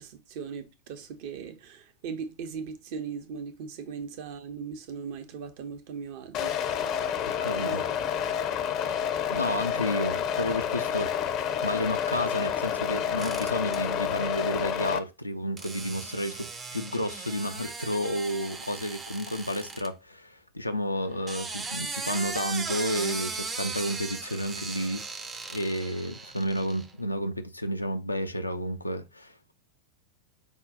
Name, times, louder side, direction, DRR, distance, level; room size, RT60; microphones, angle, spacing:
voice 1, 0.0-6.6 7.5-7.8 8.4-8.5, right 6 dB, 50° right, 0.7 m, -39 dB
sound 1, 6.3-15.0, left 9 dB, 35° left, 0.6 m, -29 dB
voice 2, 7.4-7.8 9.3-11.1 11.6-25.0 25.5-29.5, equal, 85° left, 0.5 m, -31 dB
sound 2, 13.2-13.8 15.6-19.9 21.1-26.9, right 4 dB, 20° right, 0.6 m, -37 dB
5.3 x 2.2 x 3.7 m
figure-of-eight pair, 90°, 0 cm